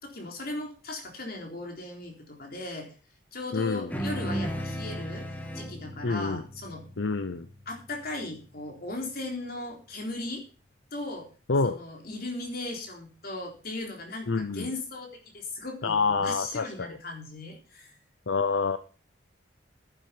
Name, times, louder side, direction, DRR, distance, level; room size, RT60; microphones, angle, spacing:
voice 1, 0.0-2.9 3.3-5.3 5.5-6.8 7.7-10.4 10.9-11.3 11.6-17.9, left 2 dB, 50° left, 2 dB, 3.8 m, -37 dB
voice 2, 3.5-3.9 6.0-6.4 7.0-7.5 11.5-11.8 14.3-14.7 15.8-16.9 18.3-18.8, left 4 dB, 75° left, 11 dB, 0.8 m, -27 dB
sound 1, 3.9-8.6, equal, 10° left, 1.6 m, -36 dB
11.0 x 10.5 x 5.2 m, 0.36 s
head